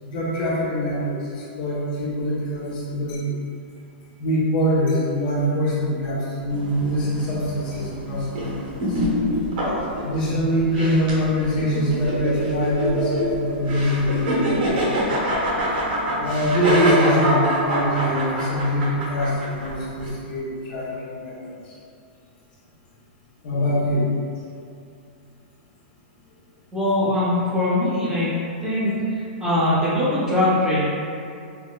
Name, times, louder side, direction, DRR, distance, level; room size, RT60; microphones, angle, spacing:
voice 1, 0.0-3.3 4.2-9.0 10.0-15.0 16.2-21.6 23.4-24.1, equal, 50° left, -8 dB, 1.0 m, -24 dB
sound 1, 6.5-20.1, equal, 60° right, 1.1 m, -25 dB
voice 2, 26.7-28.3 28.6-28.9 29.4-30.8, left 1 dB, 10° right, -11 dB, 0.7 m, -21 dB
4.6 x 2.1 x 2.3 m, 2.5 s
supercardioid pair, 160°, 6 cm